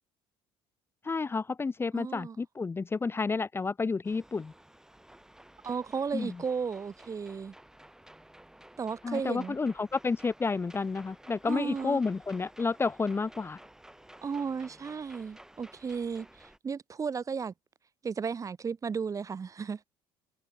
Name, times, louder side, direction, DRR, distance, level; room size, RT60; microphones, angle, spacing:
voice 1, 1.0-4.5 6.1-6.4 9.0-13.6, left 4 dB, 20° left, 0.9 m, -30 dB
voice 2, 1.9-2.4 5.6-7.5 8.8-9.6 11.5-12.0 14.2-17.5 18.0-19.8, right 6 dB, 30° right, 1.5 m, -34 dB
sound 1, 4.0-16.6, right 1 dB, 5° right, 2.8 m, -54 dB
supercardioid pair, 95°, 11 cm